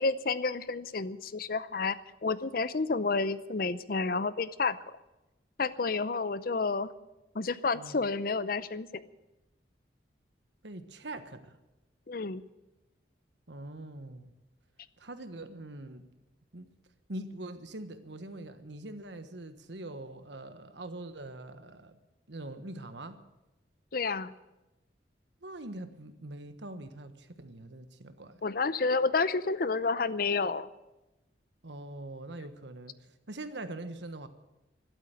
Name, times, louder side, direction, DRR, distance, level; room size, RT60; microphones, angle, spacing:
voice 1, 0.0-2.0 2.2-4.8 5.6-6.9 7.3-9.0 12.1-12.4 23.9-24.3 28.4-30.7, left 4 dB, 50° left, 16 dB, 0.6 m, -30 dB
voice 2, 10.6-11.6 13.5-14.3 15.0-16.0 16.5-16.7 17.1-22.0 22.3-23.2 25.4-28.4 31.6-34.3, right 2 dB, 75° right, 10 dB, 1.3 m, -43 dB
12.5 x 12.5 x 9.2 m, 0.98 s
head